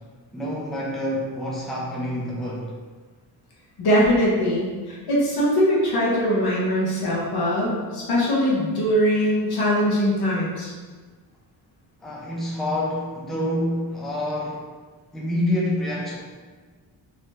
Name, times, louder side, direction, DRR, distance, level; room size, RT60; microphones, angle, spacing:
voice 1, 0.3-2.7 12.0-14.6 15.1-16.2, left 1 dB, ahead, -4 dB, 0.5 m, -27 dB
voice 2, 3.8-10.7, equal, 70° left, -6 dB, 1.3 m, -21 dB
3.2 x 3.1 x 2.8 m, 1.4 s
cardioid pair, 120°, 40 cm